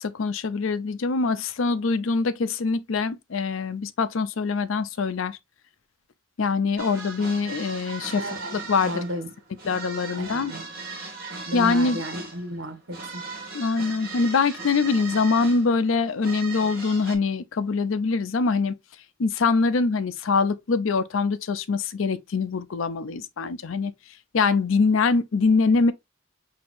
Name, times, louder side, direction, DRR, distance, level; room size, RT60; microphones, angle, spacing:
voice 1, 0.0-5.4 6.4-8.2 8.5-9.0 9.6-10.5 11.5-12.0 13.5-18.7 19.2-23.9 24.3-25.9, left 4 dB, 80° left, 0.5 m, -24 dB
sound 1, 6.8-17.1, right 4 dB, 45° right, 1.5 m, -38 dB
voice 2, 8.2-8.6 8.8-9.3 10.1-10.6 11.5-13.2, equal, 70° right, 1.3 m, -33 dB
6.0 x 2.8 x 2.6 m
head